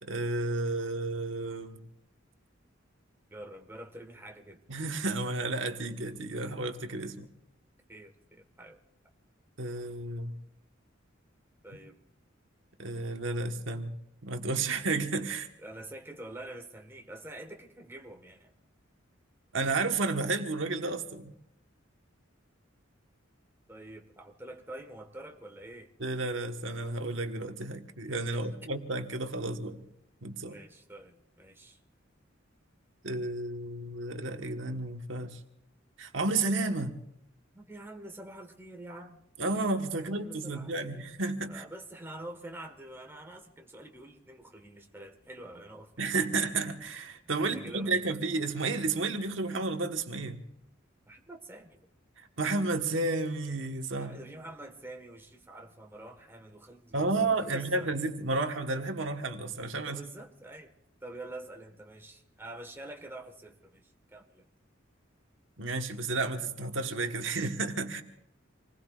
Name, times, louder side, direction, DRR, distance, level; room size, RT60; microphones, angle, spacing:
voice 1, 0.0-1.8 4.7-7.3 9.6-10.4 12.8-13.9 14.2-15.5 19.5-21.3 26.0-29.9 30.2-30.6 33.0-35.4 36.0-37.0 39.4-41.6 46.0-50.4 52.2-54.2 56.9-60.0 65.6-68.0, right 3 dB, 70° right, 1.5 m, -32 dB
voice 2, 3.3-4.6 7.9-8.8 11.6-12.0 15.6-18.5 23.7-25.9 28.3-28.5 30.4-31.8 37.5-39.2 39.9-41.2 41.5-45.9 47.4-48.0 51.1-51.8 54.0-57.1 57.4-57.9 59.8-60.7 61.0-64.4, right 1 dB, 10° right, 1.6 m, -46 dB
27.5 x 20.5 x 2.5 m
head